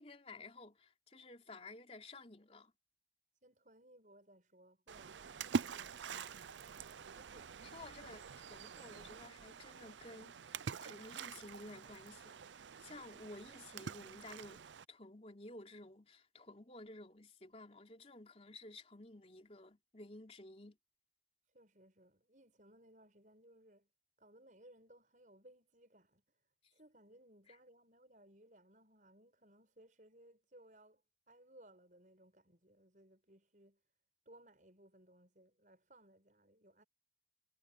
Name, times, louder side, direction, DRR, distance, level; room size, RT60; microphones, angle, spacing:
voice 1, 0.0-2.7 7.6-12.4 12.8-14.6 14.9-20.8 26.6-26.7 27.5-27.6, left 2 dB, 35° left, 3.7 m, -54 dB
voice 2, 3.4-6.0 7.1-7.5 21.4-23.9 24.2-26.2 26.7-31.0 31.3-33.8 34.2-36.8, right 1 dB, 45° right, 7.9 m, -63 dB
Splash splatter, 4.9-14.8, right 5 dB, 85° right, 0.6 m, -45 dB
head